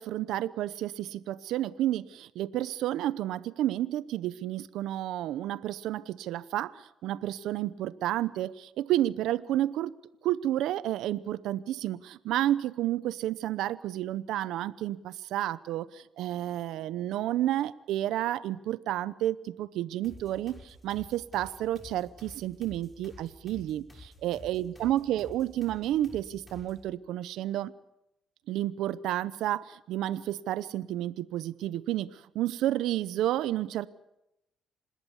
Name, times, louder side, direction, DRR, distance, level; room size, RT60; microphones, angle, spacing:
voice 1, 0.0-9.9 10.2-27.7 28.5-33.9, right 13 dB, 90° right, 17 dB, 0.8 m, -31 dB
sound 1, 20.0-26.9, left 2 dB, 15° left, 7.1 m, -51 dB
26.5 x 20.0 x 7.2 m, 0.86 s
cardioid pair, 90°, 0 cm